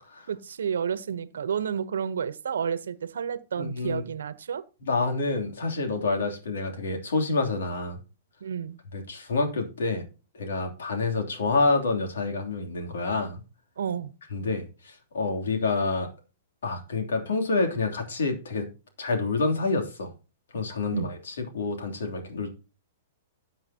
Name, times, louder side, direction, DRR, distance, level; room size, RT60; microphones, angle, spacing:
voice 1, 0.3-4.6 8.4-8.8 13.8-14.1 20.9-21.1, right 7 dB, 90° right, 1.0 m, -30 dB
voice 2, 3.6-4.0 4.8-8.0 8.9-10.0 10.4-13.4 14.3-14.6 15.1-16.1 16.6-18.7 19.0-20.1 20.5-22.5, left 3 dB, 85° left, 3.1 m, -27 dB
13.5 x 7.5 x 2.9 m
hypercardioid pair, 145°, 0 cm